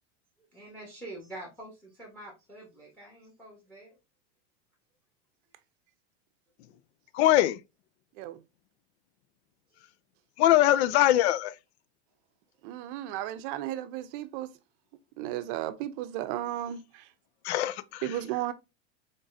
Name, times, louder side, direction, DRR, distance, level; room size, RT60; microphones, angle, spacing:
voice 1, 0.5-3.9 6.7-6.8 10.4-10.6, right 1 dB, 5° left, 1.3 m, -46 dB
voice 2, 7.1-7.6 10.4-11.5 17.4-18.2, left 13 dB, 65° left, 0.5 m, -22 dB
voice 3, 12.6-14.5 15.2-16.8 18.0-18.5, right 13 dB, 50° right, 0.6 m, -34 dB
3.9 x 3.8 x 2.6 m
supercardioid pair, 130°, 35 cm